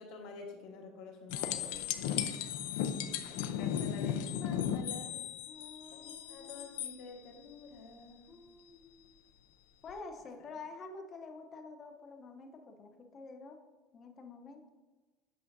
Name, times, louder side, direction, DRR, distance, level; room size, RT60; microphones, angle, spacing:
voice 1, 0.0-1.8 3.3-5.3 5.9-8.3, left 3 dB, 55° left, 1 dB, 1.3 m, -49 dB
sound 1, 1.3-7.0 9.9-10.0, left 9 dB, 80° left, 0.5 m, -36 dB
voice 2, 5.5-6.7 8.3-9.2 9.8-13.6 13.9-14.7, left 3 dB, 25° left, 5 dB, 0.7 m, -49 dB
8.3 x 6.2 x 2.6 m, 1.2 s
cardioid pair, 175°, 0 cm